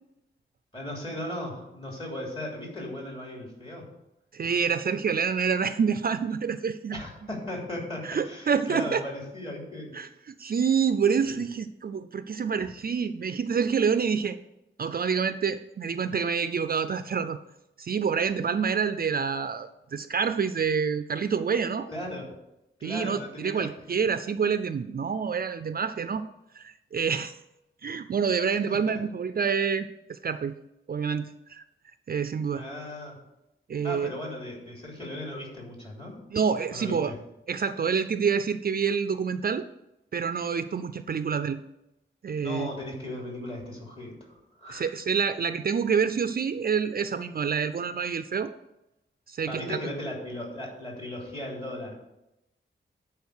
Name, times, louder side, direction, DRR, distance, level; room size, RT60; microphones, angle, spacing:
voice 1, 0.7-3.9 6.9-9.9 21.9-22.2 22.8-24.0 28.6-29.0 32.5-33.2 33.8-36.2 36.7-37.1 42.4-44.9 49.5-52.0, left 1 dB, 30° left, -2 dB, 3.2 m, -37 dB
voice 2, 4.3-7.0 8.0-9.0 9.9-14.4 14.8-17.4 17.8-21.9 22.8-26.3 26.5-27.4 27.8-30.5 30.9-31.6 32.1-32.7 33.7-34.1 36.3-37.1 37.5-39.7 40.1-41.6 42.2-42.7 44.7-48.5 49.3-49.8, right 6 dB, 50° right, 11 dB, 0.4 m, -27 dB
10.5 x 4.7 x 6.5 m, 0.89 s
wide cardioid pair, 140°, 20 cm